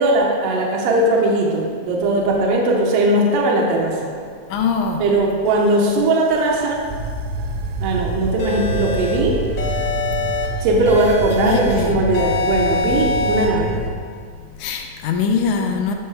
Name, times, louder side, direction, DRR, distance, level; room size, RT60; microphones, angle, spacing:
voice 1, 0.0-4.1 5.0-6.8 7.8-9.4 10.6-13.8, right 2 dB, 70° right, -1 dB, 1.7 m, -19 dB
voice 2, 4.5-5.0 11.4-12.0 14.6-15.9, left 5 dB, 80° left, 4 dB, 2.0 m, -22 dB
sound 1, 5.5-13.9, right 3 dB, 85° right, 2.0 m, -27 dB
sound 2, 8.4-9.2 9.6-10.5 10.9-11.7 12.1-13.5, left 3 dB, 65° left, 1.2 m, -24 dB
9.1 x 5.6 x 3.3 m, 2.1 s
omnidirectional pair, 3.4 m